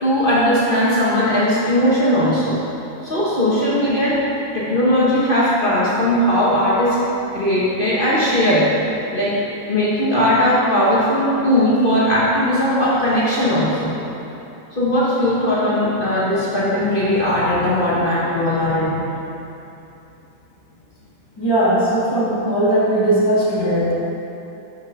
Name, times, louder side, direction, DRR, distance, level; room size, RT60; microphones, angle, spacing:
voice 1, 0.0-2.6 3.0-4.2 4.5-7.0 7.3-8.7 9.1-9.3 9.7-13.9 14.7-19.0, equal, 35° left, -8 dB, 1.0 m, -18 dB
voice 2, 21.4-23.9, right 1 dB, 15° left, -9 dB, 1.6 m, -18 dB
6.1 x 5.6 x 5.1 m, 2.9 s
omnidirectional pair, 2.0 m